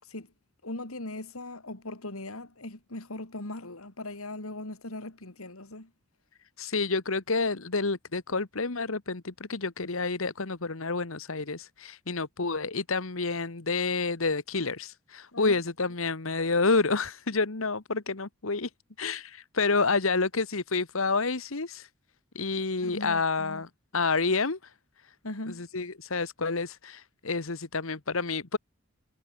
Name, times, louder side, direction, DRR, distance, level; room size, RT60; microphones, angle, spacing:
voice 1, 0.6-5.9 15.3-15.6 22.8-23.7 25.2-25.7, left 2 dB, 85° left, 3.6 m, -39 dB
voice 2, 6.6-18.7 19.0-21.9 22.3-24.6 25.6-28.6, left 4 dB, 65° left, 1.5 m, -29 dB
head